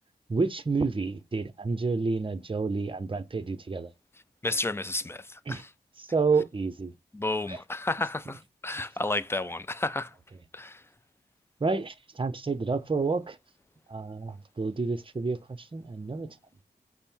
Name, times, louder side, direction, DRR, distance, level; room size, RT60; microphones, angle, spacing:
voice 1, 0.3-3.9 5.5-5.6 6.0-6.9 7.5-7.6 11.6-13.4 13.9-16.4, right 4 dB, 30° right, 0.6 m, -29 dB
voice 2, 4.4-5.6 7.1-10.1 10.5-10.8, left 2 dB, 15° left, 0.4 m, -31 dB
5.2 x 2.1 x 4.4 m
cardioid pair, 50°, 18 cm